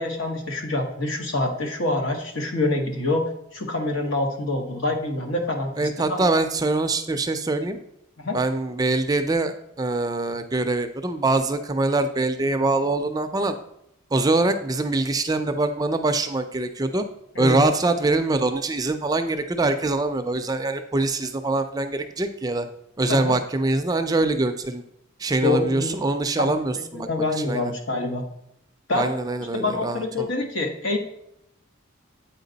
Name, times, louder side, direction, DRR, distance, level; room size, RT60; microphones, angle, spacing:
voice 1, 0.0-6.2 8.2-8.4 17.3-17.6 23.1-23.3 25.4-26.0 26.4-26.5 27.0-28.2 28.9-29.2 29.5-31.0, left 2 dB, 75° left, 3 dB, 1.3 m, -26 dB
voice 2, 5.8-7.8 8.3-13.5 14.1-17.0 17.4-22.7 23.0-24.8 25.2-27.1 27.4-27.7 28.9-30.3, right 2 dB, 20° right, 7 dB, 0.4 m, -24 dB
8.3 x 4.6 x 4.0 m, 0.78 s
head